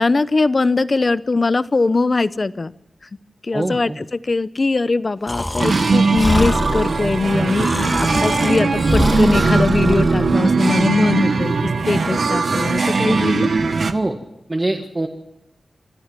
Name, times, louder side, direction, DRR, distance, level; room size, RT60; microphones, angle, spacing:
voice 1, 0.0-2.7 3.4-13.5, left 3 dB, 40° left, 15 dB, 0.8 m, -20 dB
voice 2, 3.5-4.0 13.9-14.2 14.5-15.1, right 2 dB, 25° right, 3 dB, 1.7 m, -23 dB
Breathing, 5.3-10.4, left 1 dB, 20° left, 1.8 m, -24 dB
sound 1, 5.6-13.9, right 4 dB, 65° right, 1.4 m, -19 dB
Trumpet, 6.8-13.1, right 4 dB, 85° right, 5.0 m, -39 dB
26.0 x 13.5 x 7.5 m, 0.90 s
wide cardioid pair, 120°, 0 cm